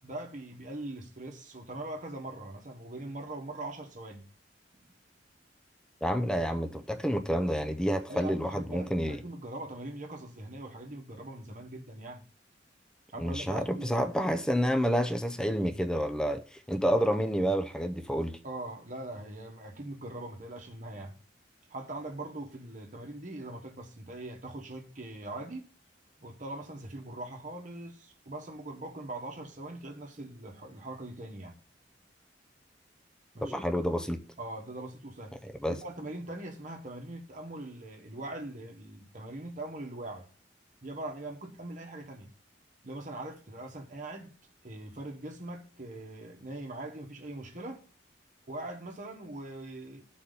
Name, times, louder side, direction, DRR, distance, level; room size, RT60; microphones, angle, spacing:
voice 1, 0.0-4.2 4.7-4.9 8.1-12.2 13.1-13.9 18.4-21.2 21.7-25.6 26.2-31.6 33.3-33.7 34.4-35.4 35.7-40.3 40.8-42.3 42.8-44.4 44.6-47.8 48.5-50.0, right 2 dB, 45° right, 1.2 m, -41 dB
voice 2, 6.0-9.2 13.2-18.4 33.4-34.2 35.6-35.8, equal, 5° left, 0.5 m, -29 dB
12.5 x 4.3 x 3.9 m
head